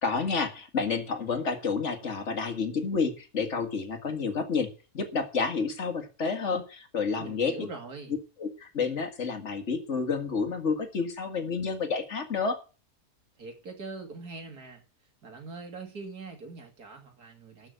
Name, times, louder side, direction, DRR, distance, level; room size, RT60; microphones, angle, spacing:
voice 1, 0.0-4.7 4.9-7.7 8.4-12.6, left 5 dB, 50° left, 6 dB, 2.1 m, -30 dB
voice 2, 7.2-8.2 13.4-14.8 15.2-17.7, right 3 dB, 80° right, 4 dB, 3.1 m, -42 dB
12.5 x 6.0 x 8.0 m, 0.35 s
omnidirectional pair, 1.6 m